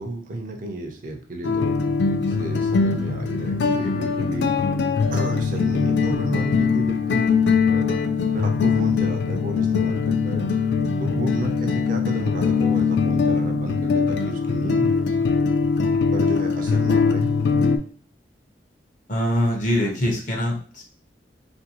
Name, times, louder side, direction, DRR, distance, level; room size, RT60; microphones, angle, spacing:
voice 1, 0.0-1.8 2.2-4.5 5.1-7.3 7.7-8.0 8.3-10.5 11.0-14.9 16.1-17.3, right 2 dB, 45° right, 3 dB, 0.5 m, -32 dB
sound 1, 1.4-17.8, left 5 dB, 70° left, 0.3 m, -21 dB
voice 2, 19.1-20.8, equal, 45° left, 1 dB, 0.7 m, -23 dB
2.6 x 2.6 x 2.8 m, 0.42 s
head